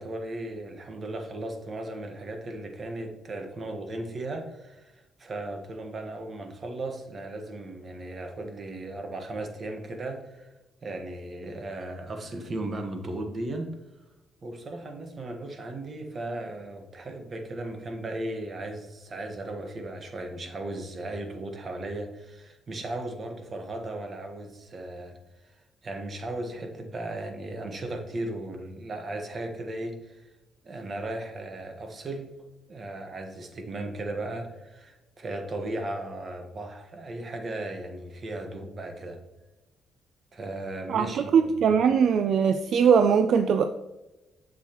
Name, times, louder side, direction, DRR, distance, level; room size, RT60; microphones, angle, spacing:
voice 1, 0.0-10.5 10.8-13.7 14.4-25.1 25.4-25.5 25.8-30.3 30.6-32.3 32.7-39.2 40.3-41.8, right 2 dB, 40° right, 5 dB, 1.3 m, -36 dB
voice 2, 40.9-43.6, right 7 dB, 65° right, 8 dB, 0.4 m, -21 dB
7.5 x 7.1 x 3.0 m, 1.0 s
cardioid pair, 90°, 0 cm